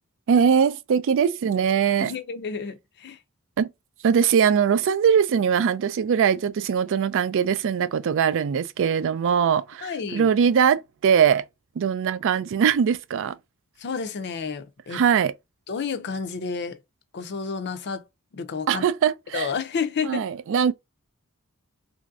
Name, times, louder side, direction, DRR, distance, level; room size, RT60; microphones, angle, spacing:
voice 1, 0.3-2.1 3.6-3.7 4.0-11.4 11.8-13.4 14.9-15.3 18.7-19.5 20.0-20.7, right 7 dB, 60° right, 0.3 m, -21 dB
voice 2, 2.0-3.2 9.8-10.3 13.8-15.0 15.7-16.8 17.1-18.0 18.3-18.8 19.3-20.2, left 5 dB, 50° left, 0.5 m, -30 dB
3.0 x 2.6 x 2.3 m
head